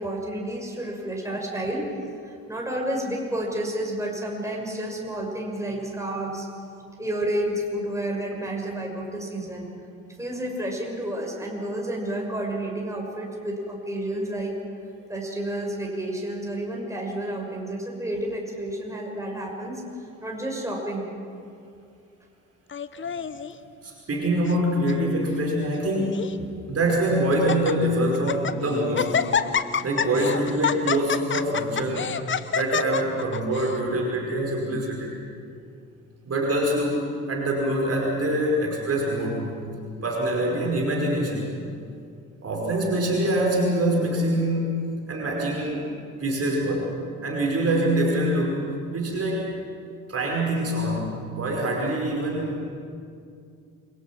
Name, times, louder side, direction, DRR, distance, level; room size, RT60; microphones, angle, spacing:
voice 1, 0.0-1.9 2.2-6.5 7.0-9.7 10.1-14.6 15.1-19.8 20.2-21.1, right 1 dB, 5° right, 0 dB, 6.1 m, -30 dB
Laughter, 22.7-23.5 24.2-24.6 24.9-25.0 25.7-26.3 26.9-27.0 27.3-27.7 28.1-28.6 29.0-33.8, left 7 dB, 25° left, 1.1 m, -27 dB
voice 2, 23.8-29.3 29.8-32.2 32.5-35.1 36.3-37.0 37.3-39.5 40.0-41.6 42.4-44.8 45.1-45.9 46.2-47.0 47.2-48.6 48.9-49.5 50.1-52.6, right 1 dB, 35° right, -1 dB, 5.2 m, -25 dB
28.0 x 22.0 x 6.1 m, 2.4 s
figure-of-eight pair, 50°, 43 cm